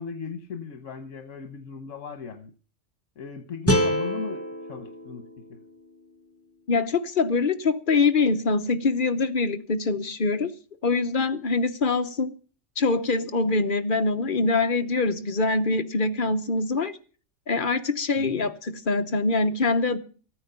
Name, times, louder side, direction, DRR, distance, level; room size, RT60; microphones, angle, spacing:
voice 1, 0.0-2.5 3.2-5.6 18.2-18.5, left 5 dB, 85° left, 1.4 m, -38 dB
sound 1, 3.7-6.8, equal, 10° left, 0.9 m, -28 dB
voice 2, 6.7-10.5 10.8-12.3 12.8-17.0 17.5-20.0, left 3 dB, 45° left, 1.0 m, -24 dB
14.0 x 9.4 x 6.7 m
omnidirectional pair, 1.3 m